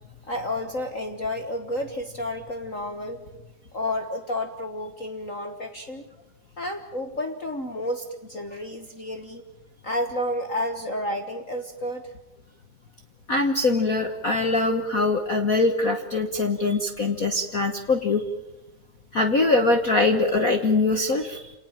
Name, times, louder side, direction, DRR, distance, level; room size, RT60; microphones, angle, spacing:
voice 1, 0.2-3.2 3.7-6.0 6.6-9.4 9.8-12.1, left 1 dB, 40° left, 7 dB, 1.1 m, -31 dB
voice 2, 13.3-18.2 19.1-21.5, left 3 dB, 70° left, 7 dB, 0.8 m, -22 dB
27.5 x 19.0 x 8.9 m, 0.97 s
omnidirectional pair, 3.5 m